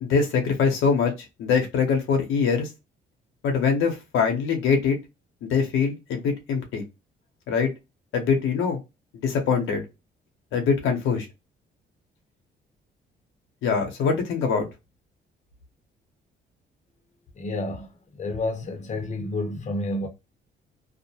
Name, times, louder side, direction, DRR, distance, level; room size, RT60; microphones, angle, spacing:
voice 1, 0.0-1.1 1.4-2.7 3.4-5.0 5.4-6.8 7.5-7.7 8.1-8.8 9.2-9.8 10.5-11.3 13.6-14.7, left 5 dB, 85° left, 0.9 m, -23 dB
voice 2, 17.3-17.9 18.1-20.1, left 2 dB, 35° left, 0.8 m, -29 dB
2.4 x 2.1 x 2.7 m
cardioid pair, 90°, 20 cm